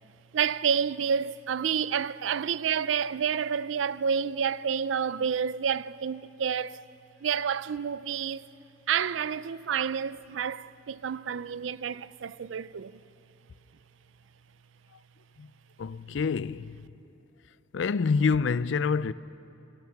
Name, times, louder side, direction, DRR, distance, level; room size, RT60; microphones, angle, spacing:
voice 1, 0.3-6.9 7.2-8.5 8.9-13.0, right 7 dB, 90° right, 0.4 m, -29 dB
voice 2, 15.8-16.9 17.7-19.1, left 5 dB, 80° left, 0.4 m, -27 dB
25.0 x 19.0 x 5.9 m
head